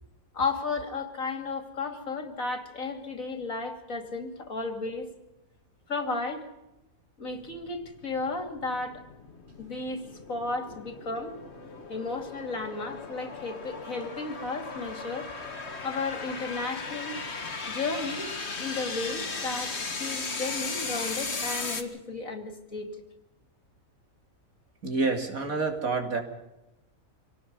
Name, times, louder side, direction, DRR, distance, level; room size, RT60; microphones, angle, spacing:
voice 1, 0.3-5.1 5.9-6.4 7.2-9.0 9.6-10.0 10.3-11.4 11.9-15.3 15.8-17.2 17.7-18.3 18.6-19.7 20.0-22.9, left 3 dB, 75° left, 6 dB, 3.1 m, -33 dB
sound 1, 7.3-21.8, left 4 dB, 50° left, 2.0 m, -37 dB
voice 2, 24.8-26.2, right 3 dB, 85° right, 4 dB, 3.3 m, -28 dB
26.0 x 18.5 x 5.5 m, 0.92 s
omnidirectional pair, 1.4 m